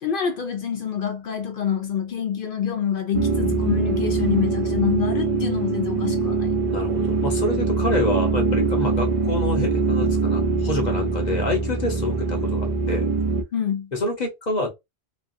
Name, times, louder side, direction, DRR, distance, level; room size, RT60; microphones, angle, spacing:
voice 1, 0.0-6.5 13.5-13.9, left 8 dB, 60° left, 0.7 m, -26 dB
sound 1, 3.1-13.4, right 4 dB, 45° right, 0.4 m, -23 dB
voice 2, 6.7-13.1 13.9-14.7, left 2 dB, 40° left, 1.1 m, -27 dB
3.1 x 2.3 x 2.5 m
omnidirectional pair, 1.1 m